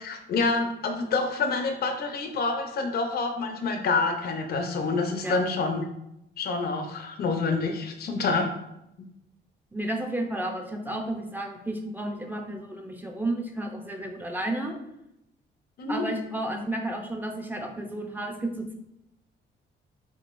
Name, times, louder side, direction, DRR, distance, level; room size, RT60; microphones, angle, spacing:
voice 1, 0.0-5.8 6.4-8.5 15.8-16.0, left 3 dB, 50° left, 4 dB, 0.6 m, -27 dB
voice 2, 9.7-14.8 15.9-18.7, right 1 dB, 10° right, 2 dB, 0.6 m, -32 dB
3.7 x 3.6 x 2.5 m, 0.83 s
cardioid pair, 90°, 20 cm